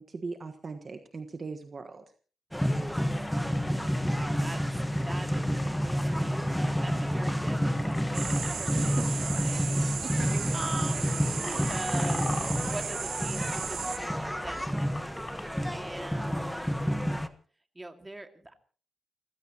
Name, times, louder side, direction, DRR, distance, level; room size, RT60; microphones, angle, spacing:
voice 1, 0.0-2.0 8.8-9.0 10.0-10.5 10.9-11.2, right 4 dB, 35° right, 6 dB, 1.4 m, -39 dB
sound 1, 2.5-17.3, equal, ahead, 1.3 m, -29 dB
sound 2, 3.1-8.5 9.5-9.7 10.0-10.3 10.9-15.6, left 3 dB, 25° left, 2.9 m, -43 dB
voice 2, 3.8-9.0 9.3-9.8 10.5-15.1 15.7-17.2 17.7-18.5, right 1 dB, 15° right, 5 dB, 2.2 m, -43 dB
sound 3, 8.1-14.0, right 7 dB, 80° right, 2.9 m, -36 dB
29.5 x 15.5 x 3.0 m, 0.40 s
wide cardioid pair, 135°, 0 cm